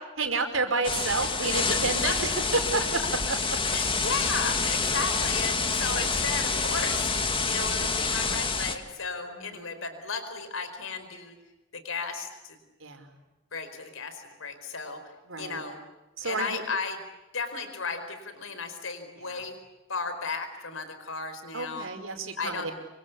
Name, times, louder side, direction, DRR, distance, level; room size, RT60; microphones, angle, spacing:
voice 1, 0.2-2.8 9.2-9.7 12.8-13.1 15.3-15.6 16.2-16.6 19.2-19.4 21.5-22.7, right 3 dB, 75° right, 5 dB, 5.1 m, -30 dB
sound 1, 0.8-8.8, left 4 dB, 25° left, 2.5 m, -27 dB
voice 2, 1.2-1.8 2.0-2.2 3.7-11.3 11.7-12.6 13.5-15.0 15.4-15.8 16.2-17.0 17.3-19.5 19.9-21.9 22.4-22.7, left 4 dB, 80° left, 9 dB, 4.7 m, -34 dB
27.0 x 25.5 x 8.5 m, 1.0 s
head